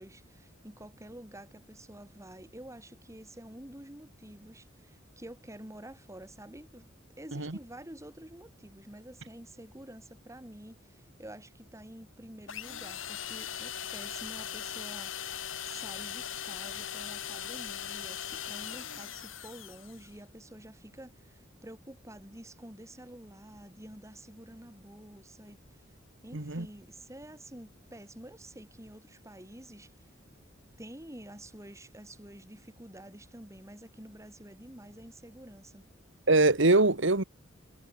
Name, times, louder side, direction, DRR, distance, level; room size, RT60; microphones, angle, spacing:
voice 1, 0.0-6.9 7.2-15.1 15.6-25.6 26.2-30.1 30.8-35.9, right 1 dB, 15° right, 5.3 m, -49 dB
sound 1, 12.5-20.1, left 9 dB, 85° left, 4.0 m, -39 dB
voice 2, 26.3-26.7 36.3-37.2, right 2 dB, 70° right, 1.9 m, -23 dB
head